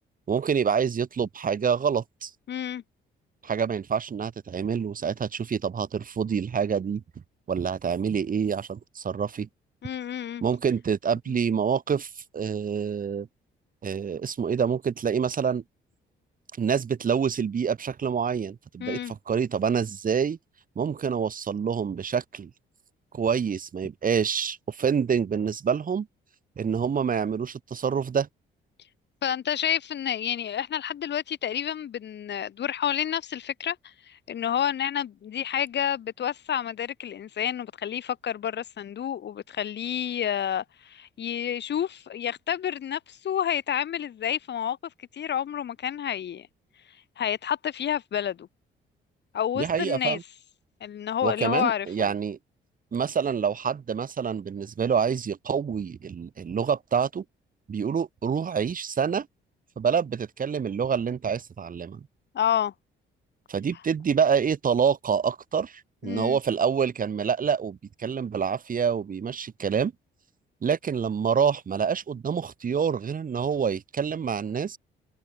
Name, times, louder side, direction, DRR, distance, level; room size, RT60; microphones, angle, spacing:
voice 1, 0.3-2.3 3.4-7.0 7.5-9.5 10.4-13.3 13.8-15.6 16.6-20.4 20.8-22.5 23.1-26.1 26.6-28.3 49.6-50.2 51.2-52.4 52.9-57.2 57.7-59.3 59.8-62.1 63.5-69.9 70.6-74.8, right 7 dB, 45° right, 2.5 m, -27 dB
voice 2, 2.5-2.8 9.8-10.4 11.3-11.4 18.8-19.1 29.2-44.8 45.1-46.5 47.2-48.5 49.3-50.2 50.8-52.1 62.3-62.7 66.0-66.4, left 9 dB, 60° left, 3.3 m, -29 dB
cardioid pair, 90°, 20 cm